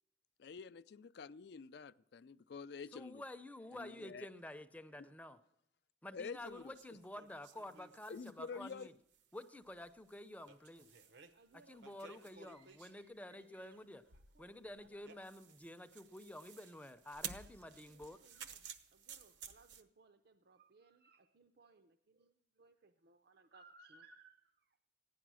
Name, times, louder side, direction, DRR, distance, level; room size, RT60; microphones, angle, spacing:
voice 1, 0.4-3.2 3.7-4.3 4.9-5.1 6.1-6.8 8.1-8.9, left 5 dB, 65° left, 0.4 m, -48 dB
voice 2, 2.9-5.4 6.0-8.9 9.3-10.9 11.5-14.0 14.4-18.2, left 1 dB, 10° left, 0.6 m, -50 dB
sound 1, 6.4-13.1 14.1-19.8, right 7 dB, 80° right, 0.9 m, -54 dB
voice 3, 11.3-13.8 14.1-15.1 17.3-24.8, right 3 dB, 60° right, 0.6 m, -66 dB
16.0 x 10.0 x 6.2 m
head